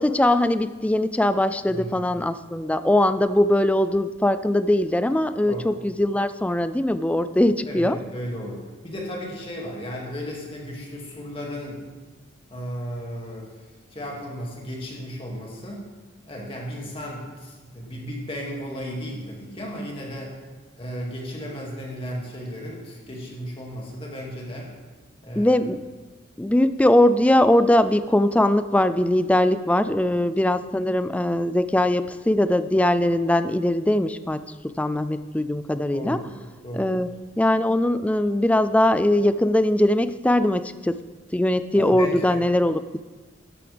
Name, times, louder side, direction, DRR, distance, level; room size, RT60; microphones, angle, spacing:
voice 1, 0.0-8.0 25.4-25.8 26.4-34.4 34.8-36.2 36.7-37.1 37.4-41.0 41.3-42.8, left 1 dB, 5° left, 12 dB, 0.3 m, -21 dB
voice 2, 1.7-2.0 5.4-5.7 7.7-11.8 12.5-13.5 13.9-15.8 16.3-20.4 20.8-24.7 25.2-25.6 35.9-37.0 41.8-42.4, equal, 30° left, -2 dB, 2.2 m, -34 dB
13.0 x 11.0 x 3.4 m, 1.3 s
head